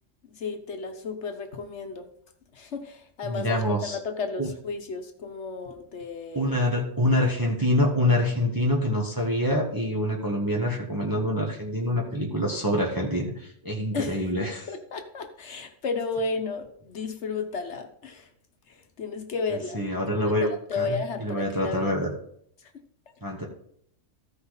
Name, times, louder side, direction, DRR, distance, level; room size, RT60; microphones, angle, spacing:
voice 1, 0.2-2.1 2.5-6.5 13.9-14.2 14.7-18.3 18.7-19.8 20.2-21.9 22.6-22.7, left 4 dB, 65° left, 6 dB, 1.4 m, -33 dB
voice 2, 3.2-4.0 4.4-4.5 6.3-14.7 19.7-22.1 23.2-23.5, left 1 dB, 15° right, -2 dB, 1.3 m, -26 dB
14.5 x 5.7 x 4.0 m, 0.68 s
omnidirectional pair, 1.3 m